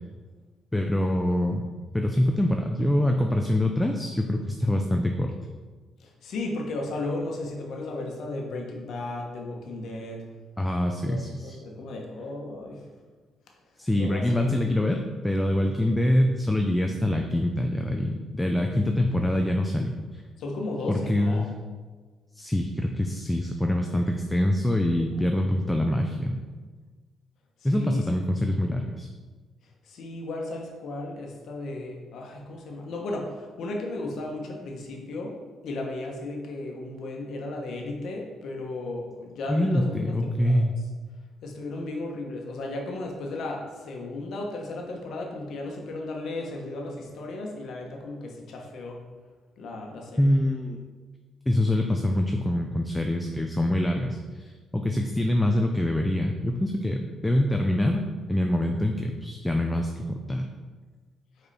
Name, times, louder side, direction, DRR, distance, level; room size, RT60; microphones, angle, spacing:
voice 1, 0.7-1.7 1.9-5.3 10.6-11.6 13.8-20.2 20.9-21.5 22.4-26.4 27.6-29.1 39.5-40.7 50.2-50.8 51.5-58.0 58.3-60.5, left 1 dB, 10° left, 3 dB, 0.5 m, -25 dB
voice 2, 6.0-10.2 11.1-12.8 13.9-14.6 20.4-21.4 27.7-28.0 29.9-35.4 35.6-40.6 41.4-49.0 49.6-50.3, left 2 dB, 70° left, 0 dB, 1.2 m, -35 dB
5.2 x 4.4 x 4.2 m, 1.4 s
cardioid pair, 90°, 0 cm